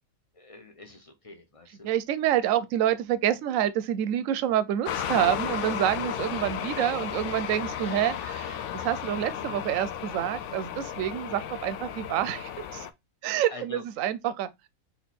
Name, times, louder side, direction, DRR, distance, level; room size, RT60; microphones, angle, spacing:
voice 1, 0.3-1.9 7.0-7.3 7.8-7.9 13.5-13.8, left 2 dB, 35° left, 0.5 m, -45 dB
voice 2, 1.8-12.9 13.2-14.5, right 11 dB, 70° right, 0.9 m, -27 dB
sound 1, 4.9-12.9, left 9 dB, 70° left, 0.8 m, -34 dB
4.4 x 2.8 x 4.1 m
omnidirectional pair, 1.5 m